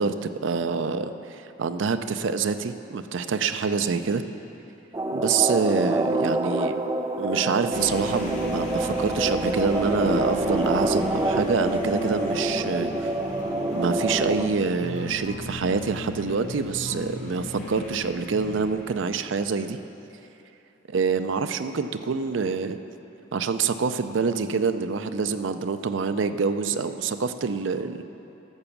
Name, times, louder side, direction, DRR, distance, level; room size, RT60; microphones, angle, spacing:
voice 1, 0.0-4.2 5.1-6.8 7.2-13.1 13.7-19.8 20.9-22.8 23.3-28.0, right 5 dB, 75° right, 10 dB, 0.5 m, -26 dB
sound 1, 4.9-14.5, right 2 dB, 20° right, 0.4 m, -26 dB
sound 2, 7.3-18.7, left 3 dB, 60° left, 0.4 m, -40 dB
sound 3, 7.7-19.4, equal, 35° left, 1.6 m, -38 dB
12.0 x 6.9 x 7.2 m, 3.0 s
head